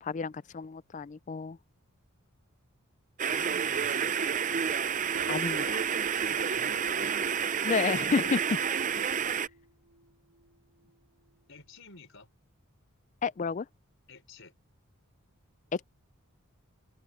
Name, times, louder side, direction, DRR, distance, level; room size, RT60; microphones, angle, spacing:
voice 1, 0.0-1.6 5.3-5.8 7.6-8.6 13.2-13.7 15.7-15.9, left 5 dB, 35° left, 0.4 m, -31 dB
voice 2, 3.2-4.4 6.2-7.1 10.8-10.9 11.5-12.3 14.1-14.5, left 3 dB, 60° left, 5.0 m, -50 dB
sound 1, 3.2-9.5, right 7 dB, 35° right, 0.5 m, -29 dB
Piano, 5.1-11.0, right 2 dB, 85° right, 7.5 m, -51 dB
head